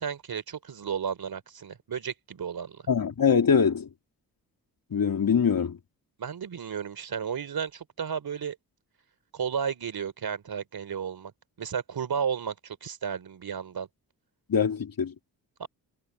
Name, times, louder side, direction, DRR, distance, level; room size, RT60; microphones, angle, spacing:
voice 1, 0.0-2.8 6.2-8.6 9.3-11.3 11.6-13.9 15.6-15.7, right 7 dB, 60° right, 3.5 m, -33 dB
voice 2, 2.9-3.9 4.9-5.8 14.5-15.1, left 6 dB, 55° left, 3.4 m, -23 dB
supercardioid pair, 40°, 41 cm